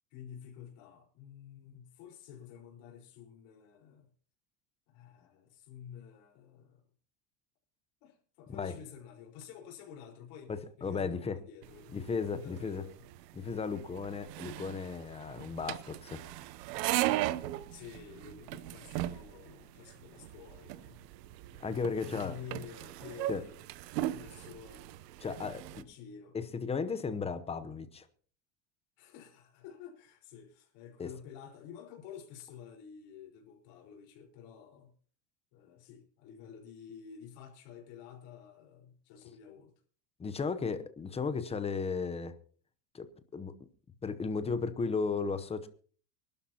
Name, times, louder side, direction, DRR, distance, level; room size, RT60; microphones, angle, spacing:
voice 1, 0.1-4.1 4.9-6.8 8.0-12.0 12.3-13.1 17.7-21.1 22.0-23.5 24.1-25.0 25.7-26.4 29.0-34.9 35.5-39.7, left 8 dB, 60° left, 4.7 m, -50 dB
voice 2, 10.5-11.4 11.9-12.8 13.3-16.3 21.6-22.3 23.3-23.4 25.2-25.6 26.3-28.1 31.0-31.1 40.2-42.3 42.9-43.5 44.0-45.7, left 5 dB, 15° left, 0.8 m, -35 dB
sound 1, 11.6-25.8, right 15 dB, 85° right, 0.9 m, -38 dB
24.5 x 12.0 x 2.9 m
supercardioid pair, 145°, 48 cm